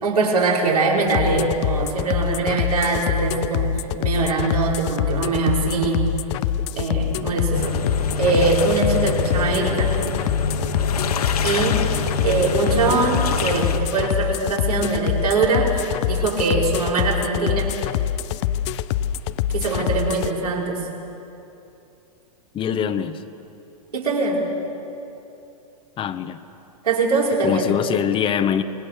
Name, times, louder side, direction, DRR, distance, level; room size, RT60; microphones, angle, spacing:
voice 1, 0.0-6.1 6.8-7.8 8.2-9.9 11.4-11.8 12.2-17.7 19.5-20.8 23.9-24.4 26.8-27.7, right 3 dB, 80° right, -3 dB, 5.8 m, -22 dB
sound 1, 1.1-20.3, left 10 dB, 50° left, 0.8 m, -25 dB
sound 2, 7.5-13.8, left 4 dB, 75° left, 2.0 m, -26 dB
voice 2, 22.5-23.2 26.0-26.4 27.4-28.6, left 8 dB, 25° left, 9 dB, 1.3 m, -23 dB
26.5 x 21.5 x 6.9 m, 2.9 s
hypercardioid pair, 105°, 20 cm